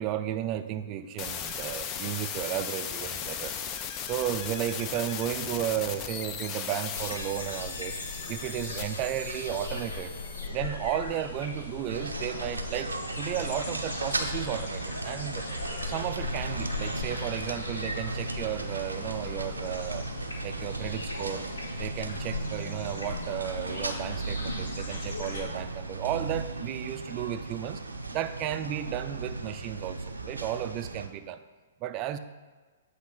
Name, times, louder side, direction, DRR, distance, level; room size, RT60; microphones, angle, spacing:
voice 1, 0.0-3.6 4.0-8.0 8.3-10.2 10.5-15.4 15.8-20.1 20.4-21.5 21.8-27.8 28.1-31.4 31.8-32.2, right 11 dB, 35° right, 10 dB, 0.4 m, -34 dB
sound 1, 1.2-10.5, left 8 dB, 30° left, 0.5 m, -37 dB
sound 2, 6.9-25.5, left 3 dB, 80° left, 1.2 m, -39 dB
sound 3, 11.9-31.1, right 2 dB, 90° right, 0.6 m, -36 dB
8.0 x 2.8 x 5.7 m, 1.4 s
figure-of-eight pair, 120°, 0 cm